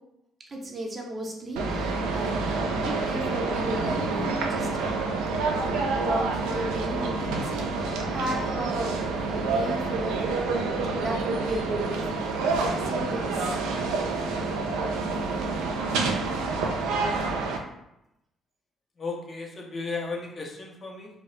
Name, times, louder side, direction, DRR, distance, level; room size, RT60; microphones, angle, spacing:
voice 1, 0.5-5.1 5.6-12.3 12.8-13.5, right 1 dB, 35° right, -1 dB, 0.6 m, -34 dB
sound 1, 1.6-17.6, right 3 dB, 80° right, 0.3 m, -28 dB
voice 2, 19.0-21.1, left 3 dB, 40° left, 0 dB, 0.6 m, -34 dB
2.2 x 2.0 x 3.0 m, 0.86 s
hypercardioid pair, 55°, 0 cm